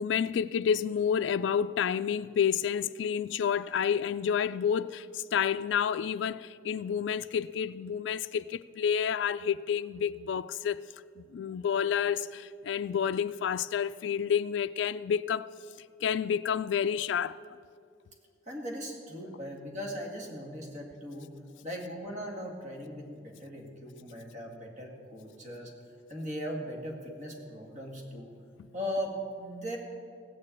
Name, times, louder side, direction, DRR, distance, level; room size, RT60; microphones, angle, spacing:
voice 1, 0.0-10.8 11.2-15.5 16.0-17.4, left 7 dB, 70° left, 0.3 m, -29 dB
voice 2, 18.5-21.3 21.6-25.7 26.1-28.3 28.7-29.8, equal, 40° right, 2.1 m, -38 dB
16.5 x 6.8 x 8.5 m
head